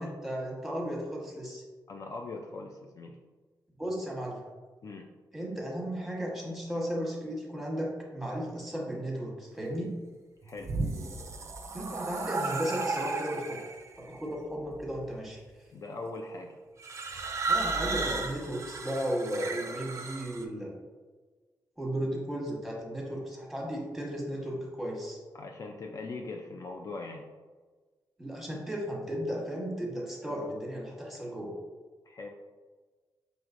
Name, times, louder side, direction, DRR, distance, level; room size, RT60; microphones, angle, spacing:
voice 1, 0.0-1.6 3.8-4.4 5.3-10.0 11.7-13.6 14.0-15.4 17.5-20.7 21.8-25.2 28.2-31.6, equal, ahead, -3 dB, 1.1 m, -35 dB
voice 2, 1.9-3.2 4.8-5.1 10.4-10.7 15.7-16.5 25.3-27.3 32.1-32.3, left 3 dB, 45° left, 1 dB, 0.3 m, -40 dB
sound 1, 10.4-13.9 14.8-15.2 16.8-20.4, right 3 dB, 40° right, 0.4 m, -34 dB
4.8 x 3.1 x 2.4 m, 1.4 s
cardioid pair, 100°, 7 cm